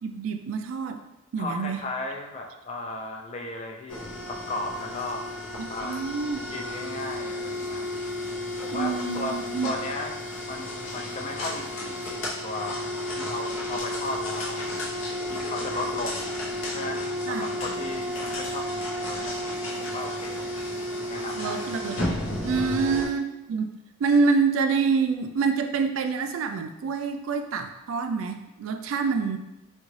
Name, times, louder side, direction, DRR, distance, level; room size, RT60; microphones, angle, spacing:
voice 1, 0.0-1.0 1.3-1.8 5.6-6.5 8.7-9.7 17.3-17.4 21.3-23.7 24.0-29.4, right 5 dB, 70° right, 7 dB, 0.3 m, -27 dB
voice 2, 1.4-5.2 5.7-6.0 6.5-7.8 8.6-10.1 10.4-12.9 13.2-14.6 15.3-16.3 16.7-20.5 21.1-21.7 22.5-22.8, left 2 dB, 30° left, 1 dB, 0.4 m, -35 dB
sound 1, 3.9-23.0, left 1 dB, 70° left, 0.7 m, -32 dB
3.7 x 2.3 x 3.1 m, 0.93 s
head